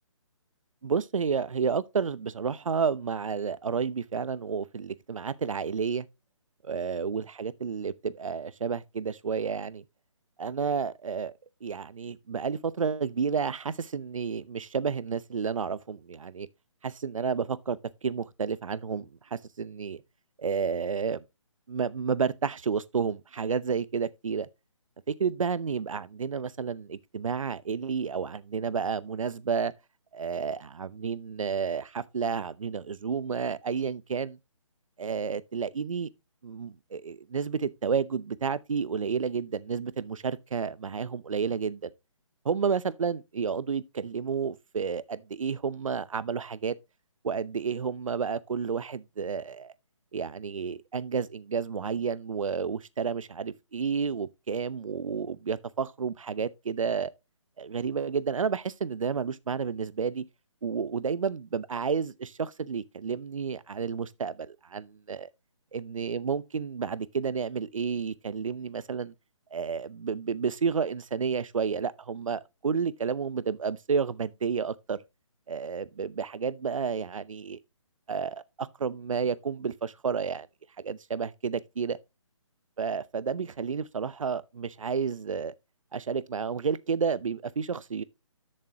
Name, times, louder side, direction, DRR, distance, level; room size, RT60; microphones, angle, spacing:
voice 1, 0.8-6.1 6.6-9.8 10.4-11.3 11.6-16.5 16.8-20.0 20.4-21.2 21.7-24.5 25.1-29.7 30.1-34.4 35.0-36.1 36.4-41.9 42.4-46.8 47.2-49.7 50.1-57.1 57.6-60.2 60.6-65.3 65.7-69.1 69.5-75.0 75.5-77.6 78.1-80.5 80.8-82.0 82.8-85.5 85.9-88.0, right 6 dB, 80° right, 0.8 m, -31 dB
11.0 x 6.7 x 2.9 m
hypercardioid pair, 170°, 17 cm